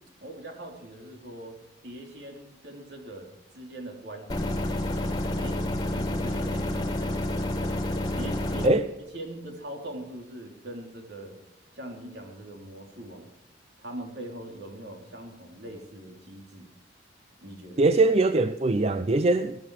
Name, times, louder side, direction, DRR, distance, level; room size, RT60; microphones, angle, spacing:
voice 1, 0.2-1.6 1.8-4.7 5.4-5.6 5.9-7.1 8.1-8.7 9.1-11.4 11.7-13.3 13.8-16.7 17.4-18.0, right 1 dB, 65° right, 3.5 m, -41 dB
sound 1, 4.3-8.7, left 1 dB, 20° left, 2.0 m, -29 dB
voice 2, 17.8-19.6, right 2 dB, 35° right, 0.5 m, -22 dB
17.5 x 13.0 x 4.9 m
head